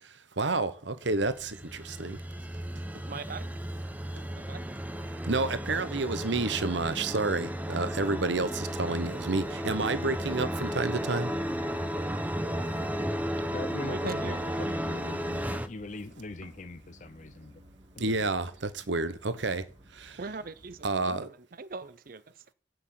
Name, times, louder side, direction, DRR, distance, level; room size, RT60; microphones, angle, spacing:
voice 1, 0.4-2.2 5.3-11.3 18.0-19.6 20.0-20.1 20.8-21.3, right 3 dB, 70° right, 1.1 m, -30 dB
sound 1, 1.1-15.7, equal, 10° right, 0.8 m, -34 dB
sound 2, 1.2-21.1, equal, 25° right, 2.2 m, -52 dB
voice 2, 3.0-3.5 4.3-4.6 13.8-14.5 20.2-22.5, right 3 dB, 45° right, 0.6 m, -40 dB
voice 3, 13.5-17.6 18.2-18.3, left 2 dB, 40° left, 0.7 m, -41 dB
8.8 x 7.7 x 7.7 m
head